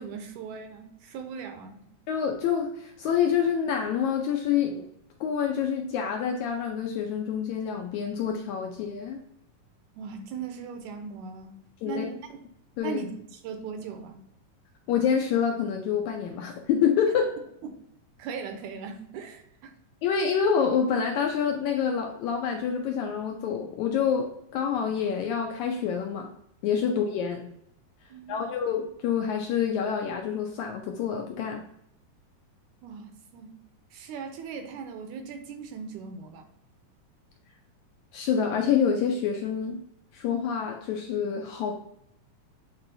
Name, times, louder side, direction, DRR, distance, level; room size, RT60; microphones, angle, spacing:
voice 1, 0.0-1.9 10.0-11.6 11.9-12.4 12.8-14.2 18.2-19.7 28.1-28.5 32.8-33.6 33.9-36.5, right 6 dB, 75° right, 6 dB, 1.9 m, -39 dB
voice 2, 2.1-4.9 5.2-9.2 11.8-12.0 12.8-13.0 14.9-17.3 20.0-26.3 26.6-27.4 28.3-31.6 38.1-39.8 40.1-41.7, left 7 dB, 80° left, 2 dB, 1.7 m, -27 dB
8.7 x 4.1 x 2.7 m, 0.76 s
omnidirectional pair, 3.9 m